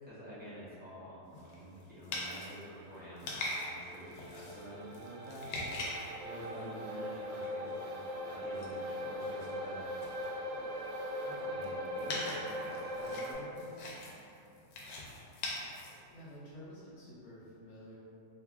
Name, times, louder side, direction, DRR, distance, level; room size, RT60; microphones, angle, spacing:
voice 1, 0.0-9.9 11.2-13.9, equal, 15° right, -11 dB, 0.4 m, -49 dB
sound 1, 1.3-6.9 7.4-8.1 8.3-16.4, left 2 dB, 90° left, 1.2 m, -43 dB
sound 2, 3.0-13.3, equal, 55° right, 0.7 m, -41 dB
sound 3, 5.8-11.5, right 1 dB, 80° right, 1.2 m, -53 dB
voice 2, 6.5-6.8 15.6-18.0, equal, 60° left, -8 dB, 0.8 m, -52 dB
3.2 x 2.3 x 3.5 m, 2.6 s
omnidirectional pair, 1.8 m